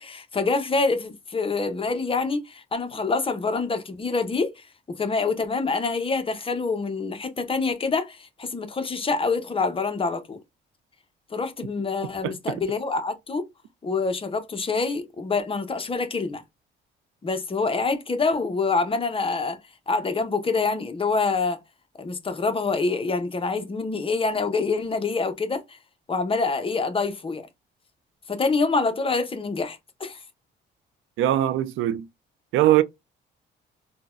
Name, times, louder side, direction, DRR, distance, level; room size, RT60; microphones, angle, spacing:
voice 1, 0.0-10.4 11.3-13.5 13.8-16.4 17.2-19.6 19.9-21.6 22.0-25.8 26.1-27.5 28.3-30.2, left 4 dB, 25° left, 0.7 m, -26 dB
voice 2, 12.2-12.6 31.2-32.1 32.5-32.8, right 13 dB, 85° right, 0.4 m, -21 dB
3.8 x 2.2 x 2.4 m
cardioid pair, 90°, 20 cm